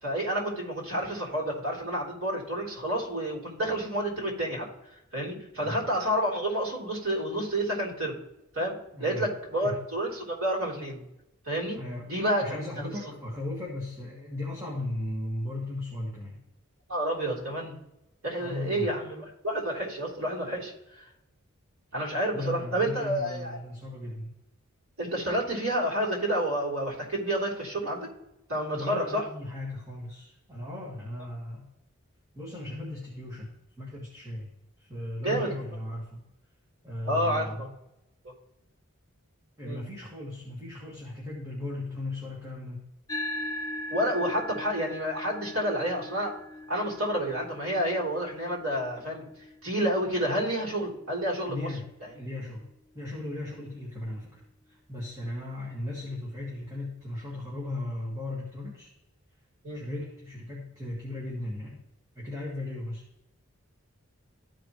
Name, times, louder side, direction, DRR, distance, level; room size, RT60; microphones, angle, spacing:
voice 1, 0.0-4.7 5.1-8.2 8.5-11.0 11.5-11.8 12.1-12.9 16.9-17.8 18.2-20.7 21.9-23.6 25.0-28.1 28.5-29.2 35.2-35.6 37.0-37.7 39.6-39.8 43.9-46.4 46.7-49.2 49.6-51.7 59.6-59.8, right 1 dB, 70° right, -3 dB, 3.2 m, -29 dB
voice 2, 8.9-9.3 9.6-9.8 11.7-12.1 12.4-16.4 18.4-18.9 22.3-24.3 28.7-31.7 32.3-33.5 33.8-34.5 34.8-36.2 36.8-37.7 39.6-42.8 51.5-51.9 52.1-52.7 52.9-58.9 59.7-61.8 62.1-63.0, left 1 dB, 15° right, -5 dB, 1.7 m, -37 dB
sound 1, 43.1-51.8, left 1 dB, 15° left, 0.4 m, -40 dB
14.0 x 5.1 x 2.9 m, 0.90 s
head